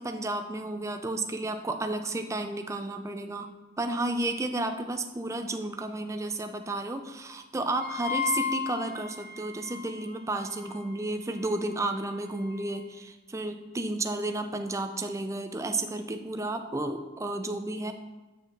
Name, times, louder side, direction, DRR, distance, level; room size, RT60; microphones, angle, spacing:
voice 1, 0.0-3.5 3.8-17.9, right 2 dB, 15° right, 6 dB, 0.4 m, -32 dB
Wind instrument woodwind instrument, 7.8-12.7, left 7 dB, 50° right, 1.5 m, -37 dB
8.4 x 6.5 x 3.2 m, 1.1 s
head